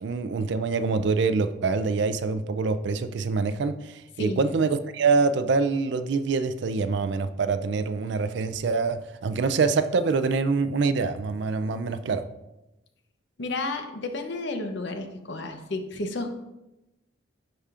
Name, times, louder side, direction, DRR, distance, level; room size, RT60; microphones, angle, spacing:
voice 1, 0.0-12.2, right 4 dB, 60° right, 11 dB, 0.4 m, -25 dB
voice 2, 13.4-16.4, left 2 dB, 60° left, 6 dB, 0.7 m, -31 dB
11.0 x 4.9 x 2.4 m, 0.96 s
head